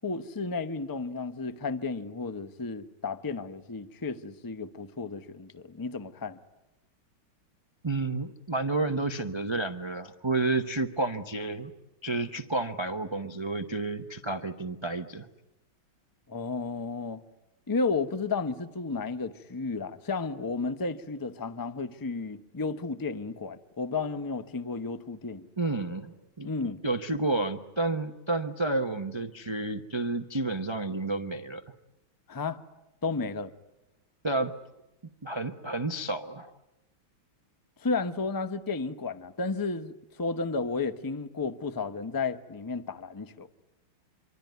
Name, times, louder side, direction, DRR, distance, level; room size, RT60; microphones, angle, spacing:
voice 1, 0.0-6.4 16.3-17.2 17.7-25.5 26.4-26.8 32.3-32.6 33.0-33.5 37.8-43.5, left 4 dB, 25° left, 0.4 m, -33 dB
voice 2, 7.8-11.7 12.0-15.3 25.6-26.5 26.8-31.6 34.2-34.5 35.2-36.5, right 2 dB, 40° right, 0.3 m, -30 dB
26.0 x 25.0 x 9.3 m
omnidirectional pair, 2.3 m